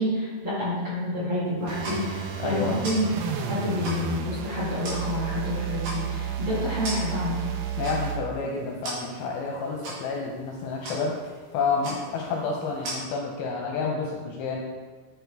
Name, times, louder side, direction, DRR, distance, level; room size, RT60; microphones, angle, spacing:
voice 1, 0.0-3.1 3.5-7.4, left 1 dB, 40° right, -10 dB, 2.2 m, -28 dB
sound 1, 1.6-12.9, right 2 dB, 60° right, 3.8 m, -41 dB
sound 2, 1.7-8.2, right 7 dB, 85° right, 2.7 m, -32 dB
voice 2, 2.4-2.9 7.8-11.1 11.5-14.6, left 4 dB, 80° left, -1 dB, 2.3 m, -29 dB
10.0 x 4.5 x 3.4 m, 1.4 s
omnidirectional pair, 4.9 m